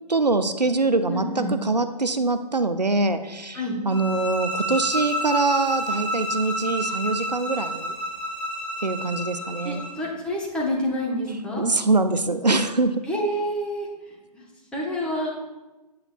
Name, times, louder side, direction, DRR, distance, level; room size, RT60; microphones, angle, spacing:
voice 1, 0.1-8.0 8.8-9.8 11.6-13.0, right 3 dB, 90° right, 10 dB, 0.6 m, -24 dB
voice 2, 1.1-1.5 3.5-3.8 9.6-11.6 13.0-13.9 14.3-14.4 14.7-15.3, equal, 5° left, -4 dB, 1.1 m, -28 dB
sound 1, 3.9-10.0, equal, 85° left, 2.0 m, -30 dB
8.6 x 8.2 x 2.3 m, 1.1 s
figure-of-eight pair, 130°, 21 cm